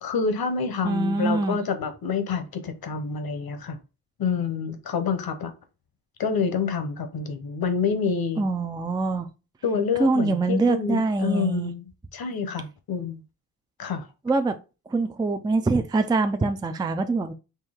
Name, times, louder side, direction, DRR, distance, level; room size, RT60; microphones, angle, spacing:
voice 1, 0.0-3.8 4.2-5.5 6.2-8.4 9.6-11.8 12.1-13.2 13.8-14.1, left 5 dB, 70° left, 0.9 m, -27 dB
voice 2, 0.8-1.6 8.4-9.3 10.0-11.7 14.3-14.6 14.9-17.3, right 3 dB, 10° right, 0.3 m, -24 dB
4.5 x 2.8 x 3.5 m
wide cardioid pair, 110°, 38 cm